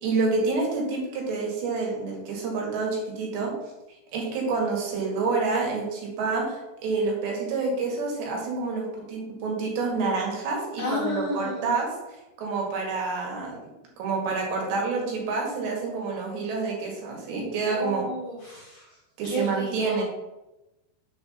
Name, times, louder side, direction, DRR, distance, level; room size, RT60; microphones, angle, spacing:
voice 1, 0.0-3.5 4.1-11.9 12.4-18.0 19.2-20.0, right 4 dB, 70° right, -1 dB, 4.0 m, -28 dB
voice 2, 10.8-11.8 17.7-19.0 19.2-20.0, left 1 dB, 65° left, -4 dB, 2.1 m, -32 dB
7.4 x 4.9 x 6.5 m, 0.98 s
omnidirectional pair, 5.4 m